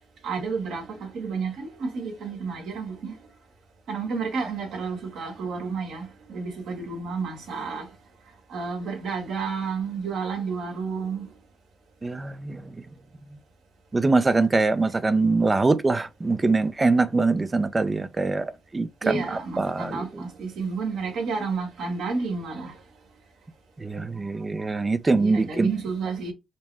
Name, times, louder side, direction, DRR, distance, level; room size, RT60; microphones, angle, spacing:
voice 1, 0.2-3.1 3.9-7.9 8.5-11.3 19.0-22.7 25.1-26.3, right 4 dB, 75° right, 1.7 m, -31 dB
voice 2, 12.0-12.7 13.9-19.2 19.6-20.2 23.8-25.7, right 3 dB, 25° right, 0.5 m, -23 dB
5.1 x 2.1 x 3.5 m
cardioid pair, 90°, 0 cm